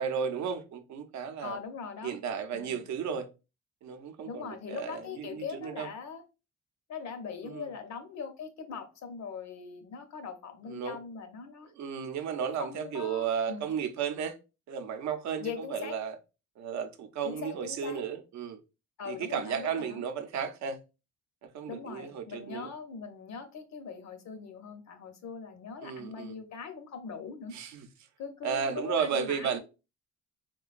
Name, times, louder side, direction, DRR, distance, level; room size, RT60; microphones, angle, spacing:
voice 1, 0.0-1.6 2.0-3.3 3.8-5.9 7.4-7.7 10.7-11.0 11.8-14.4 14.7-16.2 16.6-18.6 19.1-20.8 21.5-22.7 25.8-26.4 27.5-27.9 28.4-29.6, right 7 dB, 65° right, 0.6 m, -34 dB
voice 2, 1.4-2.2 2.5-2.8 4.2-6.2 6.9-11.7 12.4-13.7 15.4-16.0 17.2-18.0 19.0-20.0 21.7-27.5 28.2-29.6, left 6 dB, 65° left, 0.7 m, -41 dB
3.7 x 2.2 x 2.4 m
cardioid pair, 90°, 30 cm